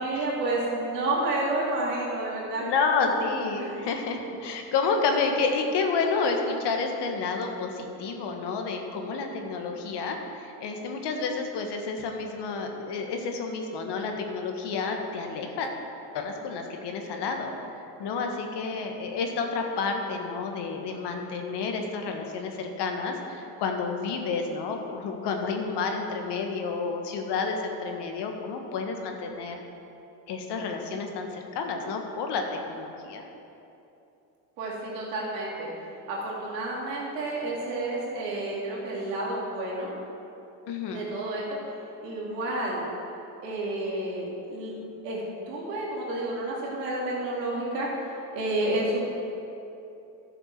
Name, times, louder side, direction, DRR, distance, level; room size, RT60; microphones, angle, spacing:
voice 1, 0.0-2.6 3.6-3.7 34.6-35.7 36.1-39.9 40.9-41.6 42.0-42.9 43.4-48.0 48.3-49.0, right 2 dB, 90° right, -4 dB, 2.9 m, -30 dB
voice 2, 2.5-15.7 16.1-17.5 18.0-29.6 30.3-33.2 40.7-41.0, left 4 dB, 60° left, 3 dB, 1.6 m, -30 dB
12.0 x 6.7 x 5.9 m, 2.8 s
supercardioid pair, 85°, 47 cm